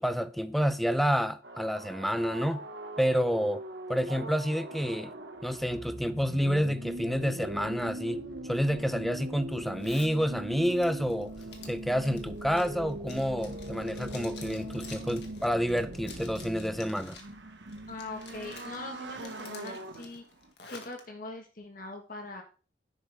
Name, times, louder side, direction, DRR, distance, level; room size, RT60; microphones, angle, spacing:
voice 1, 0.0-2.6 3.0-3.6 3.9-5.1 5.4-11.3 11.7-17.2, equal, ahead, 0.6 m, -29 dB
sound 1, 1.4-20.5, right 1 dB, 90° right, 1.4 m, -41 dB
Zipper (clothing), 9.8-10.2 10.6-17.3 17.7-18.8 19.2-21.0, left 5 dB, 75° left, 1.9 m, -50 dB
voice 2, 17.9-20.2 20.7-22.4, left 2 dB, 50° left, 1.5 m, -42 dB
10.5 x 8.1 x 3.5 m
head